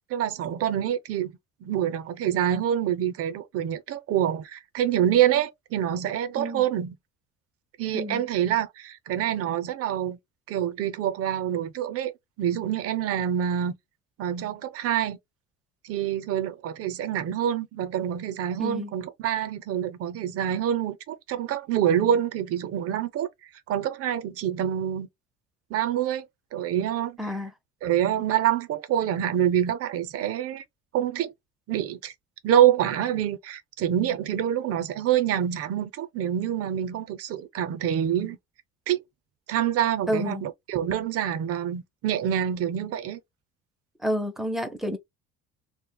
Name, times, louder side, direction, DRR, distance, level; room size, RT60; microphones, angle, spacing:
voice 1, 0.1-1.3 1.6-7.0 7.8-10.2 10.5-12.1 12.4-13.7 14.2-15.2 15.8-23.3 23.7-25.1 25.7-26.2 26.5-27.2 27.8-30.6 30.9-31.3 31.7-32.1 32.4-38.4 38.9-39.0 39.5-43.2, right 10 dB, 50° right, 0.6 m, -26 dB
voice 2, 18.6-18.9 27.2-27.5 40.1-40.4 44.0-45.0, equal, ahead, 0.5 m, -29 dB
2.3 x 2.1 x 3.6 m
cardioid pair, 135°, 30 cm